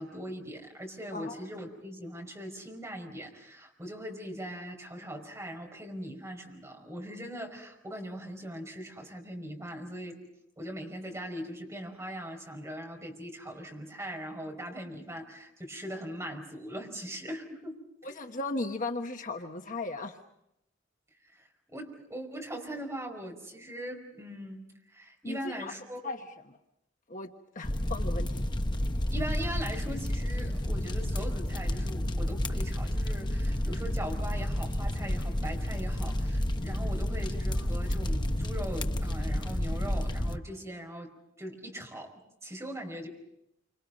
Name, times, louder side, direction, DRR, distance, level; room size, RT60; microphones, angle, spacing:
voice 1, 0.0-10.2 10.6-18.2 21.3-26.0 29.1-41.1 41.4-43.1, equal, 15° right, 2 dB, 5.3 m, -40 dB
voice 2, 18.0-20.2 25.2-25.7 26.0-26.2 27.1-28.4, left 2 dB, 45° left, 4 dB, 1.3 m, -36 dB
sound 1, 27.6-40.4, left 1 dB, 25° left, 1.0 m, -30 dB
28.5 x 27.0 x 5.4 m, 0.79 s
head